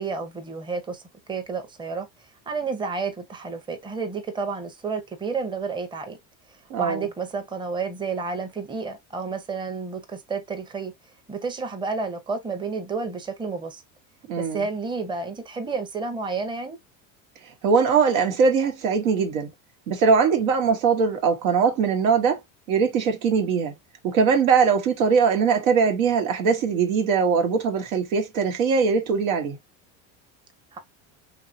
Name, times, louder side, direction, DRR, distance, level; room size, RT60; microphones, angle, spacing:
voice 1, 0.0-2.1 2.5-6.2 6.8-10.9 11.3-13.8 14.4-16.8 30.7-30.8, right 4 dB, 10° right, 0.6 m, -30 dB
voice 2, 6.7-7.1 14.3-14.7 17.6-19.5 19.9-22.4 22.7-23.8 24.0-29.6, right 5 dB, 85° right, 1.0 m, -21 dB
2.9 x 2.6 x 2.5 m
supercardioid pair, 90°, 40 cm